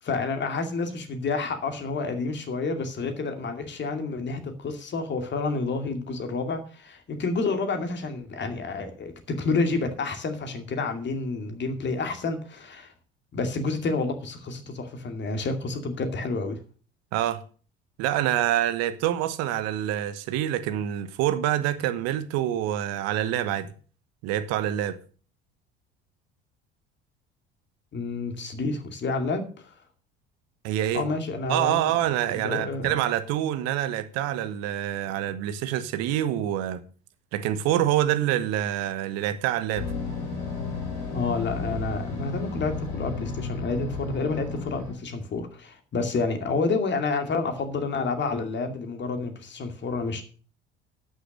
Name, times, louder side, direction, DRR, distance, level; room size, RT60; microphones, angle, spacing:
voice 1, 0.0-12.9 13.3-16.6 27.9-29.8 30.9-31.9 32.3-33.0 41.0-50.2, left 3 dB, 35° left, 2.5 m, -29 dB
voice 2, 17.1-17.4 18.0-23.7 24.2-25.0 30.6-31.0 31.5-36.8 37.3-39.9, right 12 dB, 50° right, 1.2 m, -26 dB
sound 1, 39.8-44.9, left 4 dB, 65° left, 4.1 m, -33 dB
12.5 x 6.5 x 6.5 m
figure-of-eight pair, 60°, 32 cm